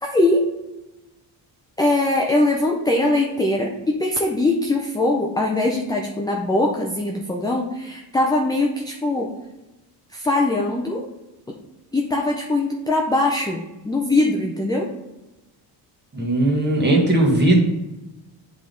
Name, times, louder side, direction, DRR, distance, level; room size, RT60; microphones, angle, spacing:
voice 1, 0.0-0.4 1.8-9.3 10.1-11.0 11.9-14.9, left 2 dB, 10° left, 0 dB, 0.5 m, -21 dB
voice 2, 16.1-17.6, right 1 dB, 25° right, -1 dB, 1.4 m, -18 dB
8.9 x 3.6 x 3.8 m, 1.0 s
cardioid pair, 130°, 44 cm